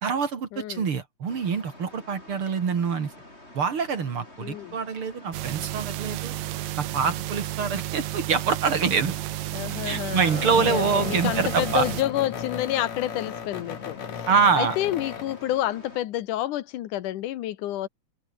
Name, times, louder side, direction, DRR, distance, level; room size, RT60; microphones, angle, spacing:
voice 1, 0.0-3.1 3.5-6.3 6.8-9.2 9.8-11.9 14.3-14.8, right 5 dB, 45° right, 2.9 m, -25 dB
voice 2, 0.5-0.9 4.4-4.8 9.5-14.3 14.5-17.9, left 13 dB, 80° left, 2.6 m, -29 dB
sound 1, 1.3-16.0, left 1 dB, 20° left, 7.7 m, -48 dB
sound 2, 5.3-12.0, right 15 dB, 70° right, 2.1 m, -32 dB
sound 3, 8.9-9.2 10.3-15.6, left 8 dB, 60° left, 3.4 m, -35 dB
open air
omnidirectional pair, 3.6 m